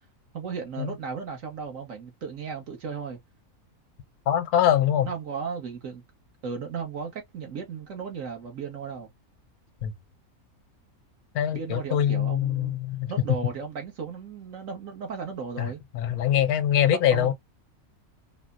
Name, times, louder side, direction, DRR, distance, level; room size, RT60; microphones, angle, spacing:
voice 1, 0.3-3.2 5.0-6.0 6.4-9.1 11.5-12.8 13.1-15.8 17.1-17.3, right 6 dB, 60° right, 1.4 m, -35 dB
voice 2, 4.3-5.1 9.8-9.9 11.3-13.1 15.6-17.3, left 10 dB, 85° left, 1.1 m, -23 dB
4.8 x 2.1 x 2.4 m
omnidirectional pair, 1.6 m